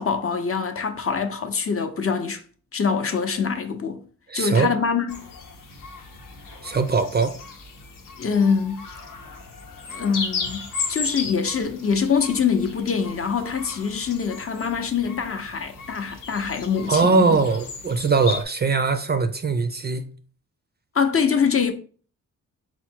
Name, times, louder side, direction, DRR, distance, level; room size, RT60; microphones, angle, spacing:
voice 1, 0.0-2.4 2.7-4.0 4.3-5.3 8.2-8.9 9.9-17.2 20.9-21.7, left 6 dB, 40° left, 0.6 m, -24 dB
voice 2, 4.3-4.7 6.6-7.4 16.9-20.0, right 4 dB, 30° right, 0.4 m, -21 dB
sound 1, 5.1-18.4, left 4 dB, 70° left, 0.8 m, -36 dB
4.2 x 2.1 x 4.4 m
wide cardioid pair, 100°, 34 cm